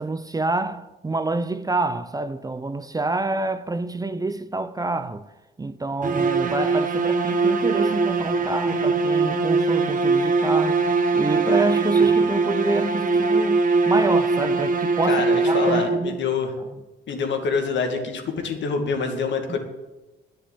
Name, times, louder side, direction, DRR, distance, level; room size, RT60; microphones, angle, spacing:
voice 1, 0.0-5.3 5.6-16.2 19.5-19.6, right 3 dB, 20° right, 0.6 m, -27 dB
sound 1, 6.0-16.2, right 4 dB, 40° right, 1.4 m, -21 dB
voice 2, 15.1-16.5 17.1-19.6, left 5 dB, 65° left, 2.2 m, -26 dB
10.0 x 8.0 x 8.4 m
cardioid pair, 90°, 20 cm